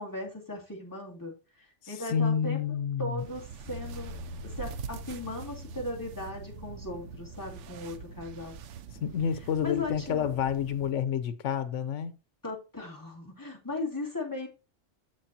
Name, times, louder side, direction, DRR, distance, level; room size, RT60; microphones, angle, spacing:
voice 1, 0.0-2.6 3.0-4.2 4.4-8.6 9.6-10.3 12.4-14.5, left 2 dB, 15° left, 2.3 m, -37 dB
voice 2, 1.8-3.2 9.0-12.2, left 8 dB, 85° left, 1.1 m, -29 dB
Blanket covering, 3.2-10.9, right 8 dB, 90° right, 1.0 m, -44 dB
Bass guitar, 3.7-9.9, left 3 dB, 70° left, 2.0 m, -47 dB
13.0 x 4.6 x 2.8 m
omnidirectional pair, 1.2 m